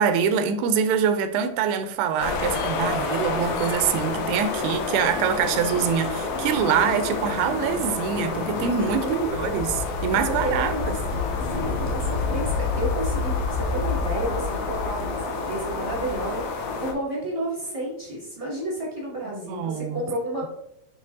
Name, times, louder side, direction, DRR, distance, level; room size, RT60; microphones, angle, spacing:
voice 1, 0.0-11.0 19.5-20.0, right 7 dB, 85° right, 2.6 m, -24 dB
sound 1, 2.2-16.9, left 4 dB, 80° left, 2.4 m, -28 dB
voice 2, 9.0-9.6 10.4-11.0 11.3-16.4 16.8-20.5, right 1 dB, 15° right, 1.1 m, -31 dB
9.6 x 3.7 x 2.7 m
omnidirectional pair, 4.6 m